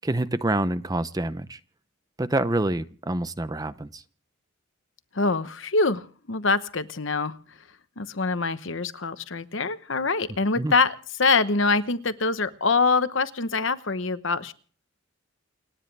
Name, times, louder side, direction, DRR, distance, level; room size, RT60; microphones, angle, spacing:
voice 1, 0.0-1.6 2.2-4.0 10.6-10.7, right 2 dB, 20° right, 13 dB, 0.7 m, -27 dB
voice 2, 5.1-6.0 6.3-7.3 8.0-14.5, left 4 dB, 65° left, 12 dB, 1.0 m, -24 dB
29.0 x 10.0 x 3.4 m, 0.43 s
head